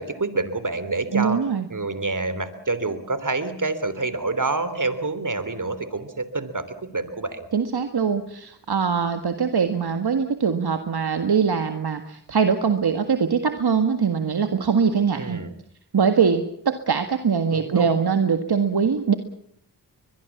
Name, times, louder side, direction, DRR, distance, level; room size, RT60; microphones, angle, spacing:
voice 1, 0.0-1.4 1.7-7.5 15.1-15.5 17.5-17.9, right 3 dB, 45° right, 13 dB, 3.2 m, -27 dB
voice 2, 1.1-1.7 7.5-15.4 15.9-19.1, right 6 dB, 65° right, 7 dB, 1.8 m, -22 dB
22.5 x 22.0 x 7.2 m, 0.68 s
cardioid pair, 40°, 43 cm